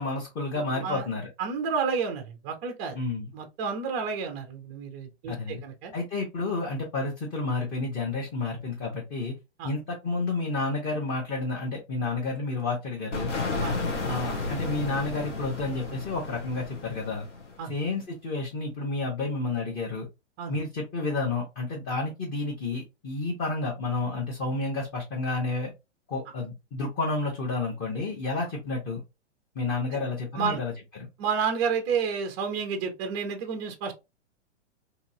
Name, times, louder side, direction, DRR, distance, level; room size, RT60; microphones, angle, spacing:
voice 1, 0.0-1.3 2.9-3.3 5.3-5.6 5.9-9.3 9.6-13.3 14.0-17.3 17.7-20.1 20.5-25.7 26.1-29.0 29.5-30.7, left 3 dB, 25° left, -1 dB, 0.9 m, -30 dB
voice 2, 1.4-3.0 3.3-5.9 9.6-9.7 13.6-13.8 17.6-17.7 20.4-20.6 29.9-30.0 30.3-30.6 31.2-33.9, right 6 dB, 20° right, 5 dB, 0.3 m, -30 dB
sound 1, 13.1-17.8, left 3 dB, 90° left, 1.1 m, -32 dB
2.8 x 2.8 x 2.6 m, 0.25 s
hypercardioid pair, 130°, 35 cm